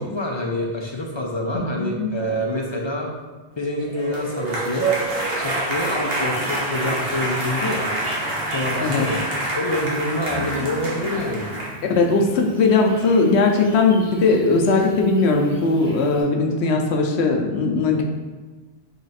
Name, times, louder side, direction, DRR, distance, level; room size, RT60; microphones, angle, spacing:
voice 1, 0.0-3.1 3.6-4.9 5.4-7.9 8.5-9.2 9.6-11.5, left 1 dB, 40° left, -1 dB, 0.4 m, -26 dB
voice 2, 1.5-2.1 8.8-9.1 12.0-18.0, left 3 dB, 85° left, 2 dB, 0.9 m, -19 dB
sound 1, 3.8-11.7, right 2 dB, 60° right, 1.2 m, -26 dB
Bird, 6.2-16.2, right 1 dB, 30° right, 1.1 m, -39 dB
4.0 x 3.2 x 4.1 m, 1.4 s
omnidirectional pair, 1.1 m